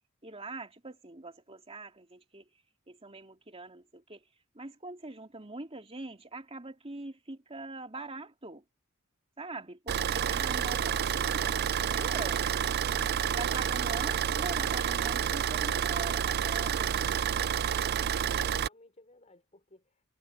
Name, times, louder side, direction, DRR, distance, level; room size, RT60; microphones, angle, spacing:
voice 1, 0.2-2.4 2.9-4.2 4.5-8.6 9.4-12.5 13.3-17.0, right 2 dB, 30° right, 2.6 m, -43 dB
Car / Idling, 9.9-18.7, right 8 dB, 50° right, 0.4 m, -29 dB
voice 2, 17.6-20.0, left 2 dB, 35° left, 4.9 m, -56 dB
head